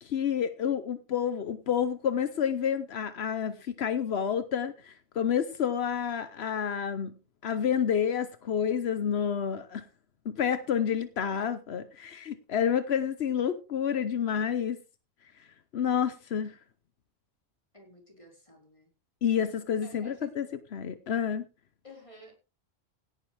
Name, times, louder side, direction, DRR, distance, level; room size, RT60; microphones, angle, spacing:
voice 1, 0.0-7.1 7.4-9.9 10.2-14.8 15.7-16.6 19.2-20.5 20.7-21.5, left 8 dB, 80° left, 1.1 m, -29 dB
voice 2, 17.7-18.9 19.8-20.4 21.8-22.3, left 1 dB, 30° left, 4.7 m, -52 dB
17.0 x 10.5 x 3.4 m
omnidirectional pair, 1.0 m